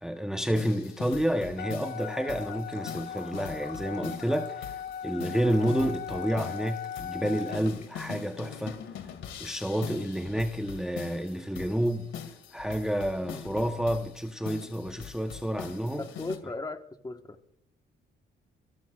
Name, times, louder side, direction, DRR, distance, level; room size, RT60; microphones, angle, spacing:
voice 1, 0.0-8.8 9.4-12.1 12.5-16.0, equal, 5° right, 1.0 m, -30 dB
sound 1, 0.5-16.4, left 8 dB, 80° left, 2.1 m, -43 dB
Wind instrument woodwind instrument, 1.6-7.6, left 9 dB, 55° left, 0.7 m, -39 dB
Engine / Trickle dribble / Fill (with liquid), 1.6-8.6 8.9-9.9 10.2-10.3 12.2-12.3 12.5-12.8 13.2-13.3 13.5-13.6, left 4 dB, 40° left, 5.8 m, -56 dB
voice 2, 16.0-17.4, left 2 dB, 20° left, 1.4 m, -38 dB
27.5 x 18.0 x 2.4 m
cardioid pair, 90°, 20 cm